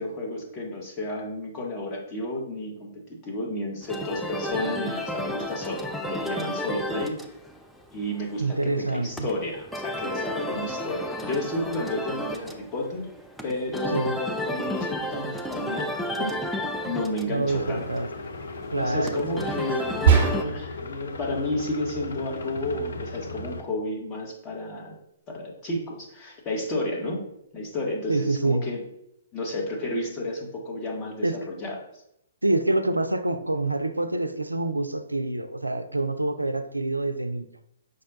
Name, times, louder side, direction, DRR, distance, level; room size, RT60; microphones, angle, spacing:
voice 1, 0.0-2.9 3.2-7.2 7.9-13.1 13.4-15.9 16.1-16.6 16.8-17.8 18.7-24.9 25.3-27.2 27.5-28.8 29.3-31.3 31.6-31.8, left 1 dB, 25° left, 1.2 m, -31 dB
sound 1, 3.8-20.4, equal, ahead, 0.4 m, -33 dB
voice 2, 8.4-9.3 13.9-14.1 17.3-18.1 18.7-19.2 28.1-28.6 31.2-31.4 32.4-37.5, right 2 dB, 85° right, 0.3 m, -26 dB
sound 2, 17.5-23.6, left 3 dB, 60° left, 0.5 m, -37 dB
sound 3, 20.1-20.8, right 6 dB, 45° right, 1.1 m, -20 dB
5.2 x 2.2 x 3.9 m
figure-of-eight pair, 120°, 0 cm